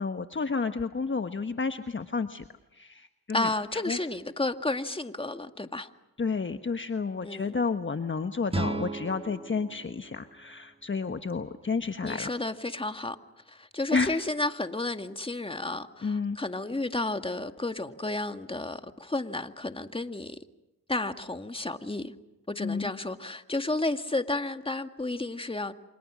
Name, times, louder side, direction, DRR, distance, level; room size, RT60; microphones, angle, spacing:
voice 1, 0.0-2.4 2.7-4.0 6.2-12.3 13.9-14.1 16.0-16.4 22.6-22.9, left 4 dB, 30° left, 1.3 m, -31 dB
voice 2, 3.3-5.9 7.2-7.6 12.0-13.2 13.5-20.4 20.9-22.1 22.5-25.7, left 2 dB, 15° left, 2.0 m, -32 dB
sound 1, 8.5-11.5, right 2 dB, 15° right, 1.7 m, -36 dB
29.5 x 26.0 x 6.3 m
cardioid pair, 60°, 37 cm